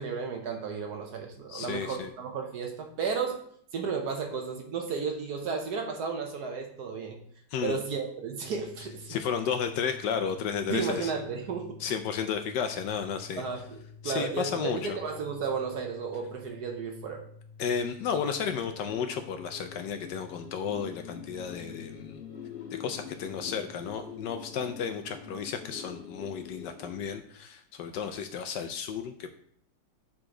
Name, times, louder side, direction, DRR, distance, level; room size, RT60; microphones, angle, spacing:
voice 1, 0.0-3.4 3.7-7.2 7.6-9.2 10.7-11.8 13.4-13.8 14.0-17.2, right 5 dB, 60° right, 3 dB, 1.2 m, -33 dB
voice 2, 1.5-2.1 7.5-7.8 9.1-11.1 11.8-13.4 14.0-15.0 17.6-22.2 22.7-29.3, left 7 dB, 75° left, 7 dB, 1.1 m, -33 dB
sound 1, 8.4-25.8, left 5 dB, 50° left, 1.0 m, -51 dB
sound 2, 18.2-27.0, left 7 dB, 30° left, 1.6 m, -46 dB
6.9 x 5.0 x 3.7 m, 0.65 s
omnidirectional pair, 2.1 m